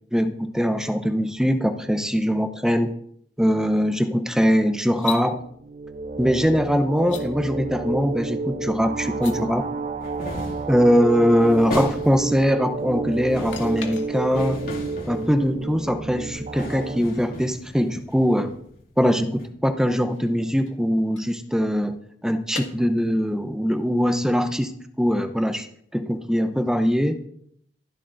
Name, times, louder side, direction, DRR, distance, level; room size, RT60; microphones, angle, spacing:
voice 1, 0.1-2.9 3.4-5.4 6.2-9.7 10.7-14.7 15.0-18.5 19.0-25.7 25.9-27.2, equal, 5° right, 9 dB, 0.7 m, -22 dB
sound 1, 4.9-5.3 7.0-7.3 9.1-9.4 13.5-14.5 17.7-17.8 19.8-21.9 22.5-22.7, left 8 dB, 85° left, 1.9 m, -38 dB
sound 2, 5.4-17.0, right 3 dB, 45° right, 0.9 m, -31 dB
sound 3, 10.0-10.8 11.2-12.4 13.1-15.8 16.3-19.0 19.4-19.5, left 1 dB, 50° left, 2.9 m, -36 dB
13.0 x 11.5 x 4.0 m, 0.67 s
head